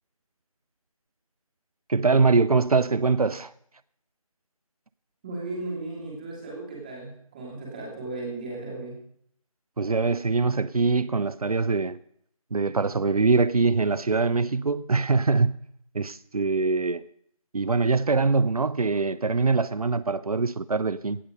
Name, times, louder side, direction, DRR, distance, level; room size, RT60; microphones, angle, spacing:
voice 1, 1.9-3.5 9.8-12.0 12.5-15.6 15.9-17.0 17.5-21.2, right 4 dB, 80° right, 0.5 m, -23 dB
voice 2, 5.2-9.0, right 2 dB, 15° right, 2.9 m, -35 dB
17.5 x 6.7 x 5.3 m
figure-of-eight pair, 165°, 19 cm